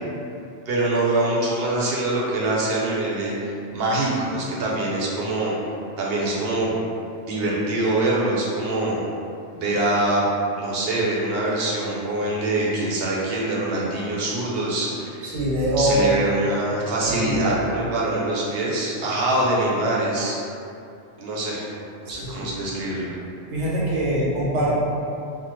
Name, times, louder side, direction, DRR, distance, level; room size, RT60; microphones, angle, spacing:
voice 1, 0.7-5.5 6.0-6.7 7.3-9.0 9.5-10.2 10.6-15.3 15.8-20.4 21.2-21.7 22.0-23.1, right 2 dB, 65° right, -5 dB, 0.8 m, -24 dB
voice 2, 15.2-16.1 17.0-17.6 22.1-22.5 23.5-24.8, right 1 dB, 85° right, -7 dB, 1.1 m, -23 dB
3.5 x 2.0 x 3.0 m, 2.6 s
omnidirectional pair, 1.2 m